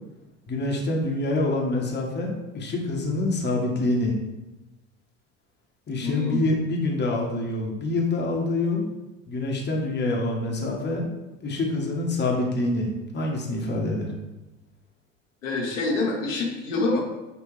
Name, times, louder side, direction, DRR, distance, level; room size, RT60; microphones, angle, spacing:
voice 1, 0.5-4.1 5.9-8.9 9.3-11.1 11.4-14.1, left 2 dB, 25° left, -1 dB, 1.1 m, -26 dB
voice 2, 6.0-6.5 15.4-17.0, left 3 dB, 80° left, -2 dB, 1.2 m, -26 dB
5.9 x 2.7 x 3.2 m, 1.0 s
hypercardioid pair, 75°, 38 cm